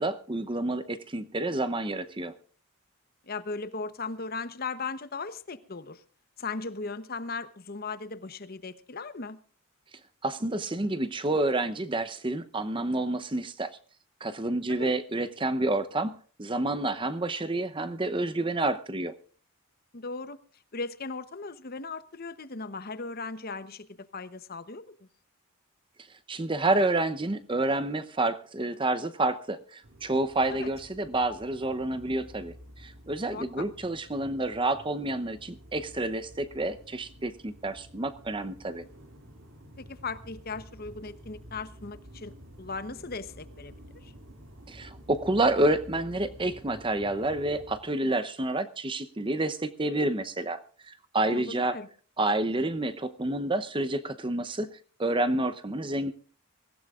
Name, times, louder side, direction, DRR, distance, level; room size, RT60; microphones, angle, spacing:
voice 1, 0.0-2.3 10.2-13.7 14.2-19.1 26.3-32.5 32.8-38.8 44.7-50.6 50.9-51.8 52.2-54.7 55.0-56.1, right 2 dB, 25° right, 11 dB, 0.7 m, -29 dB
voice 2, 3.2-6.0 6.4-9.4 14.8-14.9 19.9-20.4 20.7-23.9 24.1-25.1 30.5-30.7 33.3-33.7 39.8-44.1 51.1-51.9, left 4 dB, 45° left, 13 dB, 0.8 m, -37 dB
sound 1, 29.8-47.8, equal, 65° right, 2.5 m, -50 dB
24.0 x 15.5 x 2.4 m, 0.41 s
head